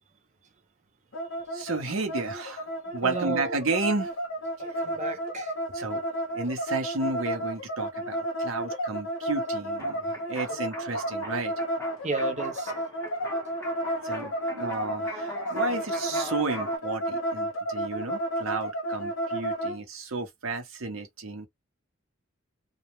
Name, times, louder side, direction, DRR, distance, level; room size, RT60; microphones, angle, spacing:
sound 1, 1.1-19.8, right 1 dB, 65° left, 0.7 m, -32 dB
voice 1, 1.5-4.1 5.7-6.0 6.3-11.5 14.0-21.5, right 3 dB, 80° right, 0.8 m, -32 dB
voice 2, 3.0-3.6 4.6-5.5 10.5-10.6 12.0-12.7, right 4 dB, 35° right, 0.5 m, -33 dB
sound 2, 9.8-16.8, equal, 15° left, 0.7 m, -41 dB
2.3 x 2.1 x 2.9 m
head